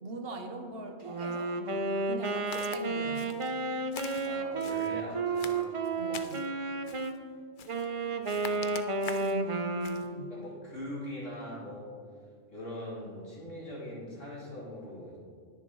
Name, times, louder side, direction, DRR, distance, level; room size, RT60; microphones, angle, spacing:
voice 1, 0.0-1.6 2.1-3.3 6.0-6.5 9.2-10.4, right 2 dB, 55° right, 5 dB, 1.1 m, -40 dB
Wind instrument woodwind instrument, 1.0-7.2 7.7-10.3, right 3 dB, 40° right, 0.5 m, -32 dB
Walk footsteps, 2.5-2.8 3.1-3.5 3.9-4.9 5.3-6.5 6.8-7.2 7.6-7.9 8.2-9.4 9.8-10.1, left 7 dB, 55° left, 0.6 m, -44 dB
voice 2, 4.3-5.7 8.2-8.6 10.3-11.9 12.5-15.2, equal, 80° left, -7 dB, 3.8 m, -41 dB
20.5 x 7.0 x 3.1 m, 2.2 s
omnidirectional pair, 1.3 m